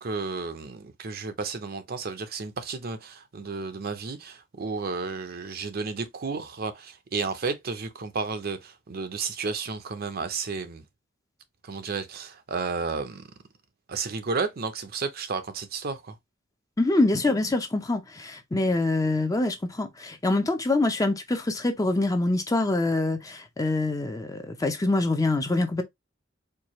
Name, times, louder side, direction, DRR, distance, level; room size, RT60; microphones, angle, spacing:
voice 1, 0.0-10.8 11.6-13.2 13.9-16.2, right 4 dB, 55° right, 0.6 m, -32 dB
voice 2, 16.8-25.8, left 2 dB, 20° left, 0.6 m, -25 dB
4.5 x 2.3 x 3.0 m
head